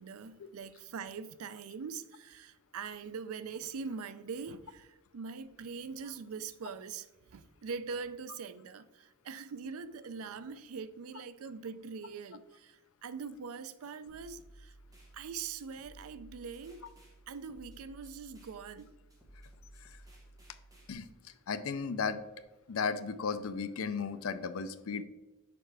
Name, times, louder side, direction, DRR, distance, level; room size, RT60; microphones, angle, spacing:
voice 1, 0.0-14.7 15.1-16.9 17.3-18.9, right 5 dB, 80° right, 0.4 m, -43 dB
sound 1, 14.1-20.9, right 1 dB, 15° right, 1.3 m, -56 dB
voice 2, 21.5-22.2 22.7-25.0, left 5 dB, 75° left, 0.5 m, -35 dB
6.7 x 4.9 x 3.3 m
head